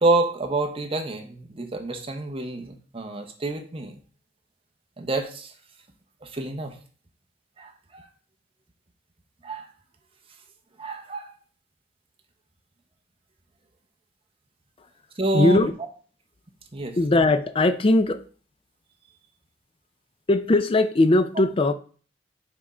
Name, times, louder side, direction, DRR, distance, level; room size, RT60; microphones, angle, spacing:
voice 1, 0.0-3.9 5.0-5.5 6.2-6.8 7.6-8.1 9.4-9.7 10.8-11.3 15.2-15.7 16.7-17.0, right 2 dB, 30° right, 0.8 m, -27 dB
voice 2, 15.3-15.7 17.0-18.2 20.3-21.7, left 2 dB, 30° left, 0.4 m, -19 dB
6.0 x 3.6 x 4.3 m
head